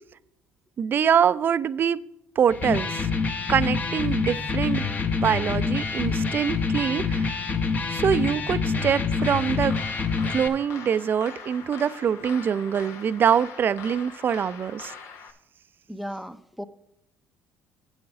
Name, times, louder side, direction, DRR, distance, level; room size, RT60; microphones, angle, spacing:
voice 1, 0.8-2.0 2.4-3.1 3.5-5.0 5.2-7.4 7.9-9.8 10.3-14.9, right 8 dB, 45° right, 0.5 m, -24 dB
Electric guitar, 2.5-10.5, left 4 dB, 35° left, 1.1 m, -26 dB
sound 1, 9.2-15.3, left 6 dB, 70° left, 1.2 m, -42 dB
voice 2, 15.9-16.6, equal, ahead, 0.7 m, -35 dB
8.6 x 8.0 x 4.8 m
supercardioid pair, 80°, 5 cm